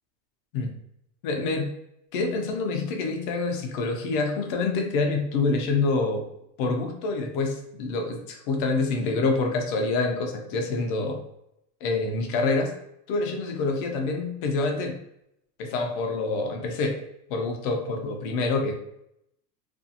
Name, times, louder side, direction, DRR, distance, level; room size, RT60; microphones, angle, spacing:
voice 1, 1.2-1.7 2.1-6.2 6.6-11.2 11.8-12.7 13.1-15.0 15.6-17.0 17.3-18.7, left 3 dB, 35° left, 3 dB, 0.4 m, -26 dB
2.5 x 2.4 x 2.6 m, 0.78 s
supercardioid pair, 140°, 50 cm